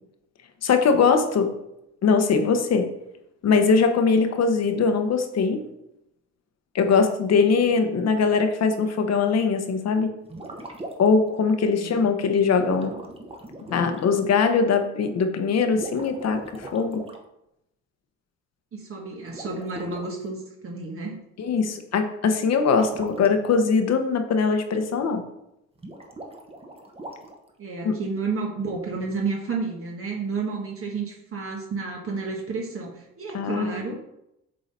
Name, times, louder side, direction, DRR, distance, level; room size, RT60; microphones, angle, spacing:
voice 1, 0.6-1.5 2.0-2.9 3.4-5.6 6.7-10.1 11.0-13.0 13.7-17.0 21.4-25.2 27.8-27.9 33.3-33.9, left 5 dB, 60° left, 7 dB, 1.0 m, -21 dB
sound 1, 10.2-11.2 12.5-14.0 15.7-17.2 19.3-20.1 22.6-23.3 25.8-27.5, right 1 dB, 20° right, 1.1 m, -39 dB
voice 2, 11.8-12.1 18.7-21.2 27.6-33.9, right 4 dB, 45° right, -1 dB, 1.4 m, -31 dB
7.3 x 3.8 x 4.2 m, 0.83 s
cardioid pair, 90°, 30 cm